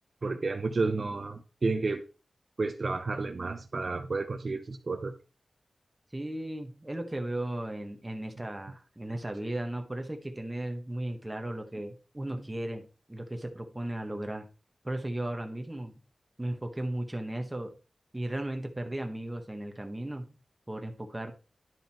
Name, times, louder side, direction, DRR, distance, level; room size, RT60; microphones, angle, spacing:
voice 1, 0.2-2.0 2.6-5.1, right 3 dB, 50° right, 0.9 m, -31 dB
voice 2, 6.1-14.5 14.8-16.0 16.4-17.7 18.1-20.3 20.7-21.3, right 1 dB, 15° right, 1.5 m, -36 dB
11.0 x 5.4 x 4.5 m
wide cardioid pair, 105°, 0 cm